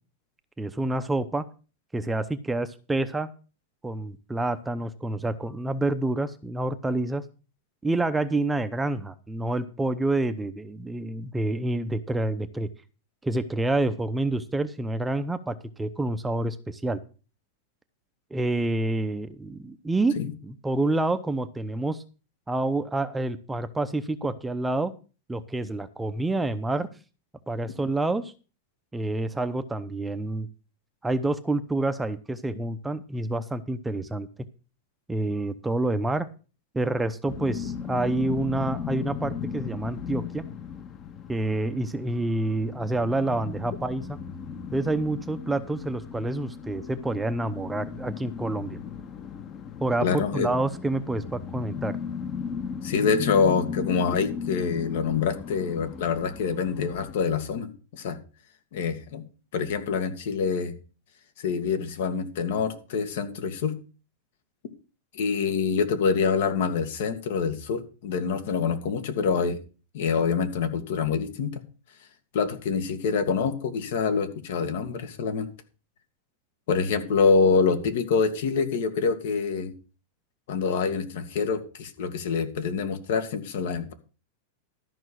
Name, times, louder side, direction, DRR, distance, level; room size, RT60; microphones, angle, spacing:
voice 1, 0.6-1.5 1.9-3.3 3.8-7.2 7.8-12.7 13.2-17.0 18.3-20.1 20.4-22.0 22.5-24.9 25.3-26.9 27.5-28.3 28.9-30.5 31.0-34.3 35.1-36.3 36.7-40.5 41.3-44.2 44.7-48.8 49.8-52.0 54.1-54.2, right 2 dB, 10° right, 11 dB, 0.7 m, -28 dB
sound 1, 37.3-57.1, left 7 dB, 30° left, 1.0 m, -36 dB
voice 2, 50.0-50.5 52.8-58.2 58.7-59.2 59.5-60.7 61.4-63.8 65.1-69.6 69.9-71.6 72.3-75.5 76.7-79.7 80.5-83.9, left 5 dB, 70° left, 9 dB, 2.0 m, -26 dB
13.0 x 5.7 x 6.3 m, 0.34 s
supercardioid pair, 145°, 0 cm